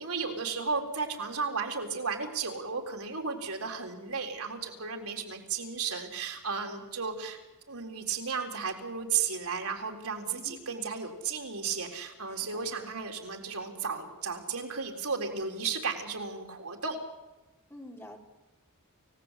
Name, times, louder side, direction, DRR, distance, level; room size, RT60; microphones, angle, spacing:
voice 1, 0.0-7.4 7.7-17.0, right 5 dB, 75° right, 2 dB, 4.0 m, -34 dB
voice 2, 10.3-10.7 12.3-12.7 17.7-18.2, left 1 dB, 10° left, 2 dB, 3.3 m, -48 dB
29.5 x 17.5 x 8.4 m, 1.1 s
head